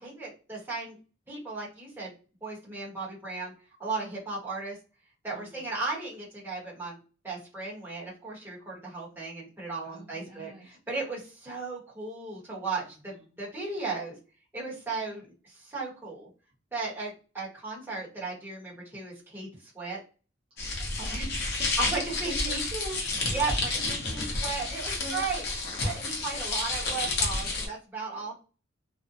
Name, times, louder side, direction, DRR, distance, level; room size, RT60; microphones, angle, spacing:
voice 1, 0.0-1.0 1.3-2.1 2.4-3.5 3.8-4.8 5.2-7.0 7.2-14.2 14.5-16.3 16.7-20.0 21.0-21.1 21.8-22.6 23.3-25.4 25.8-28.3, right 3 dB, 10° right, -7 dB, 1.0 m, -36 dB
voice 2, 5.3-5.7 9.8-10.8 12.9-13.3 15.1-15.2 20.5-20.7 21.0-21.7 22.3-23.0 24.2-24.7 25.0-25.3 28.1-28.3, right 2 dB, 30° right, -5 dB, 0.5 m, -43 dB
sound 1, 20.6-27.7, left 3 dB, 50° left, 0.7 m, -30 dB
2.5 x 2.2 x 2.5 m, 0.35 s
head